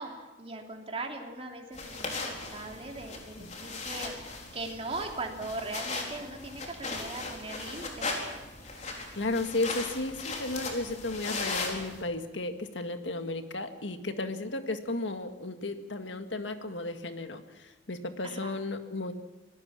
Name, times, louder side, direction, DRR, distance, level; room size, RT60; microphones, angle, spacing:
voice 1, 0.0-4.1 4.5-8.1 18.2-18.6, right 2 dB, 35° right, 2 dB, 3.1 m, -39 dB
sound 1, 1.7-12.0, left 3 dB, 40° left, 4.0 m, -38 dB
voice 2, 9.1-19.1, left 2 dB, 80° left, 8 dB, 1.8 m, -34 dB
26.0 x 18.5 x 7.5 m, 1.1 s
head